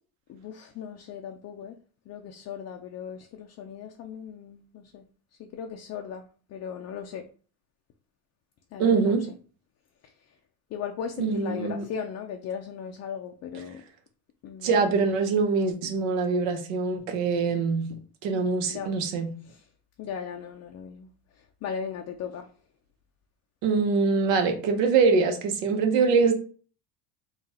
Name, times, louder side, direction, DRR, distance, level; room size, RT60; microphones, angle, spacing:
voice 1, 0.3-1.8 2.1-5.0 5.4-6.3 6.5-7.2 8.7-9.2 10.7-13.8 14.4-14.7 18.7-18.9 20.0-21.1 21.6-22.5, left 7 dB, 40° left, 0.5 m, -37 dB
voice 2, 8.8-9.2 11.2-11.9 13.5-13.6 14.6-17.8 18.2-19.3 23.6-26.3, right 4 dB, 80° right, 1.2 m, -24 dB
3.8 x 2.4 x 4.2 m
cardioid pair, 135°, 43 cm